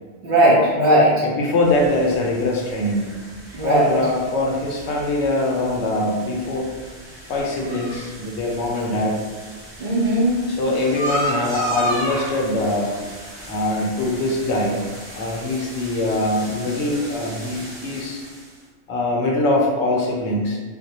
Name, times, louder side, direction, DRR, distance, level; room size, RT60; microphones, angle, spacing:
voice 1, 0.2-1.2 3.5-3.9 9.8-10.5, right 1 dB, 55° right, -6 dB, 0.6 m, -17 dB
voice 2, 1.2-3.1 3.6-6.7 7.3-9.2 10.5-13.0 13.5-14.9 15.2-18.2 18.9-20.6, left 1 dB, 90° left, -2 dB, 0.9 m, -22 dB
sound 1, 1.6-18.6, equal, 5° right, 0.5 m, -34 dB
2.1 x 2.1 x 2.8 m, 1.4 s
omnidirectional pair, 1.1 m